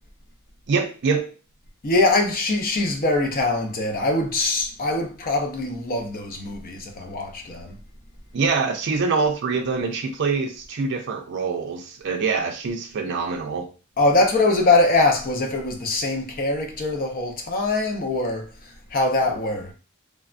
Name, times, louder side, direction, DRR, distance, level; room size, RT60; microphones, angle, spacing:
voice 1, 0.7-1.3 8.3-13.7, right 4 dB, 55° right, 0.4 m, -24 dB
voice 2, 1.8-7.8 14.0-18.5 18.9-19.7, left 2 dB, 45° left, 0.6 m, -22 dB
3.3 x 2.2 x 2.5 m
head